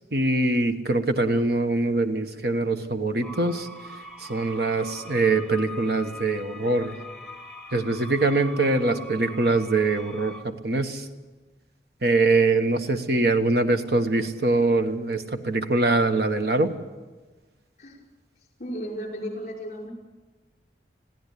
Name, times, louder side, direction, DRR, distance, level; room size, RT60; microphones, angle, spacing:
voice 1, 0.1-3.7 4.2-7.0 7.7-11.0 12.0-16.7, right 2 dB, 60° right, 7 dB, 1.4 m, -23 dB
sound 1, 3.2-10.4, equal, 5° left, 1.3 m, -42 dB
voice 2, 18.6-19.9, equal, 40° left, 0 dB, 5.6 m, -34 dB
21.5 x 15.5 x 8.5 m, 1.2 s
head